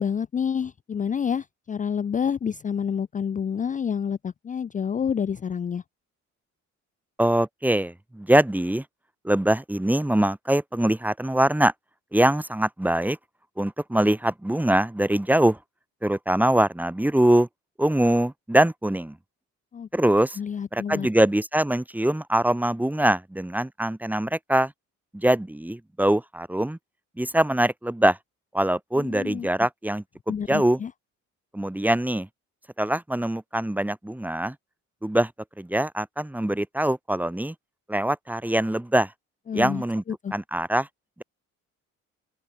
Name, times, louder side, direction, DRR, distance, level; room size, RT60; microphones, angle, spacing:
voice 1, 0.0-5.8 19.7-19.9 20.4-21.1 29.0-29.5 30.3-30.9 39.5-39.8 40.2-40.3, left 7 dB, 25° left, 0.4 m, -28 dB
voice 2, 7.2-8.8 9.2-11.7 12.1-13.2 13.6-15.6 16.0-17.5 17.8-19.2 19.9-20.4 20.7-24.7 25.1-26.8 27.2-28.2 28.5-30.8 31.5-32.3 32.8-34.6 35.0-35.3 35.6-37.5 37.9-39.1 39.5-40.0 40.3-40.9, right 1 dB, 5° right, 1.0 m, -23 dB
open air
cardioid pair, 90°, 30 cm